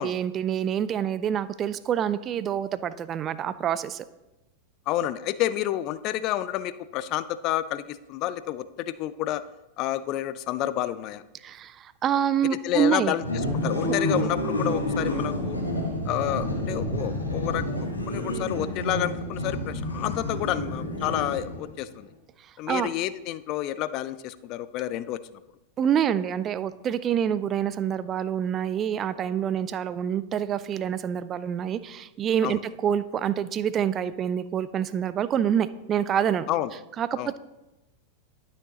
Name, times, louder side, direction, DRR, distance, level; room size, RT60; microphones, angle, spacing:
voice 1, 0.0-4.0 11.4-13.1 22.7-22.9 25.8-36.5 37.0-37.4, right 9 dB, 30° right, 15 dB, 0.4 m, -27 dB
voice 2, 4.9-9.4 9.8-11.2 12.5-13.2 13.6-15.6 16.1-22.1 22.6-25.2 32.4-32.6 36.5-36.7 37.2-37.3, left 13 dB, 40° left, 15 dB, 0.4 m, -29 dB
sound 1, 13.2-21.7, left 1 dB, 85° left, 1.4 m, -29 dB
12.0 x 6.4 x 2.9 m, 1.0 s
figure-of-eight pair, 90°, 0 cm